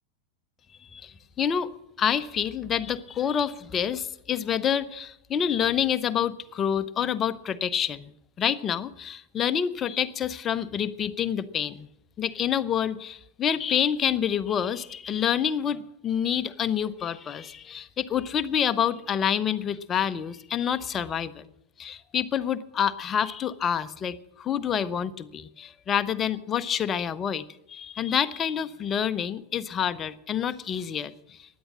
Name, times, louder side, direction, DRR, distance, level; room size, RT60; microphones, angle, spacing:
voice 1, 0.9-1.7 2.0-8.1 8.4-11.9 12.2-21.4 21.8-31.4, left 8 dB, 25° left, 13 dB, 0.8 m, -27 dB
16.0 x 10.5 x 6.4 m, 0.78 s
figure-of-eight pair, 90°, 0 cm